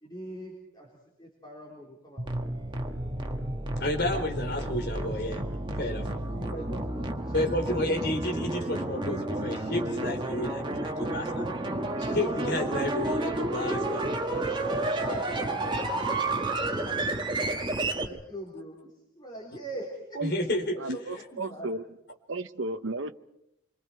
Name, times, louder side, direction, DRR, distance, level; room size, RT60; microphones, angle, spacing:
voice 1, 0.0-2.4 3.0-3.4 6.3-7.4 7.7-8.0 14.5-20.2 20.7-21.7, right 1 dB, 20° left, 4.0 m, -43 dB
sound 1, 2.2-18.1, right 2 dB, 20° right, 1.6 m, -31 dB
voice 2, 3.8-5.4 5.8-6.1 7.3-11.5 12.0-14.1 20.2-20.7, left 1 dB, 50° left, 4.2 m, -31 dB
voice 3, 20.8-21.8 22.3-23.1, right 2 dB, 60° right, 0.8 m, -33 dB
28.0 x 24.0 x 4.7 m
head